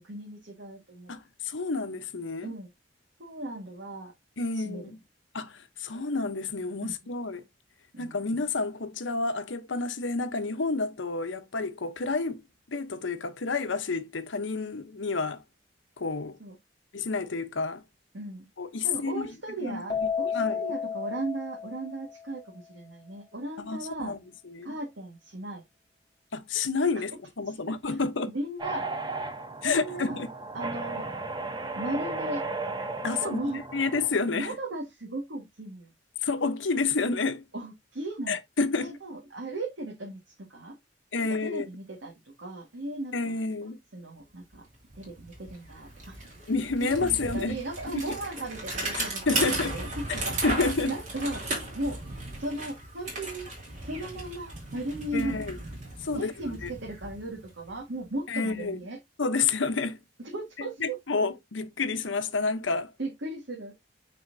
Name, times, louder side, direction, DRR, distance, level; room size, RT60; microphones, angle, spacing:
voice 1, 0.0-1.2 2.4-2.7 3.2-4.1 4.5-4.8 6.8-7.0 7.9-8.2 16.4-16.6 18.1-18.5 18.8-24.1 24.6-25.6 27.5-27.6 27.9-28.0 28.3-28.9 29.6-30.2 30.5-31.1 31.7-32.5 33.2-33.6 34.3-35.9 37.5-38.4 38.8-40.7 41.2-43.3 43.9-44.6 44.9-46.2 46.8-51.4 51.7-52.0 52.4-53.5 53.8-55.4 56.1-59.0 60.2-61.0 63.0-63.7, right 1 dB, 70° right, 1.8 m, -36 dB
voice 2, 1.1-2.5 4.4-5.0 5.3-7.4 8.0-12.4 12.7-15.4 16.0-16.4 16.9-17.8 18.6-19.3 19.6-20.6 23.6-24.2 24.5-24.7 26.3-28.3 29.6-30.3 33.0-33.4 33.7-34.5 36.2-37.4 38.3-39.0 41.1-41.7 43.1-43.8 46.5-47.6 47.9-48.2 49.3-49.8 50.2-51.0 55.1-55.6 56.0-56.3 56.6-56.7 58.3-58.8 59.2-60.0 60.6-62.9, left 4 dB, 85° left, 0.9 m, -29 dB
Keyboard (musical), 19.9-22.4, left 7 dB, 25° left, 0.5 m, -32 dB
sound 1, 28.6-34.2, right 3 dB, 25° right, 0.9 m, -35 dB
Bicycle, 44.5-44.6 44.9-57.8, right 2 dB, 40° right, 3.2 m, -36 dB
9.1 x 4.3 x 2.7 m
head